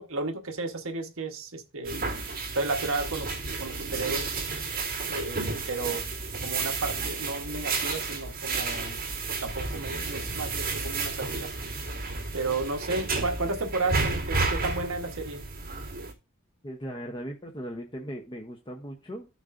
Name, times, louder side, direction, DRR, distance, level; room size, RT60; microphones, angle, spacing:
voice 1, 0.0-2.0 2.5-4.4 5.1-6.0 6.4-9.0 9.4-11.5 12.3-15.4, right 3 dB, 65° right, 4 dB, 1.2 m, -33 dB
sound 1, 1.8-16.1, right 3 dB, 40° right, 2.5 m, -32 dB
voice 2, 16.6-19.3, equal, 20° left, 2 dB, 0.8 m, -38 dB
14.5 x 6.3 x 2.6 m, 0.30 s
head